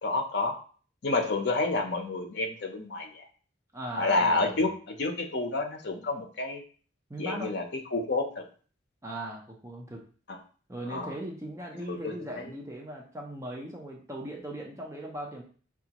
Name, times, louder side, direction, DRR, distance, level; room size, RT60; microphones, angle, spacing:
voice 1, 0.0-0.6 1.0-3.3 4.0-6.6 7.2-7.6 7.9-8.4 10.3-10.4 10.9-11.2 11.9-12.5, left 3 dB, 55° left, 4 dB, 0.6 m, -29 dB
voice 2, 3.7-4.7 7.1-7.5 9.0-10.0 10.7-15.4, right 1 dB, 15° right, -1 dB, 0.5 m, -39 dB
4.9 x 2.4 x 2.9 m, 0.41 s
head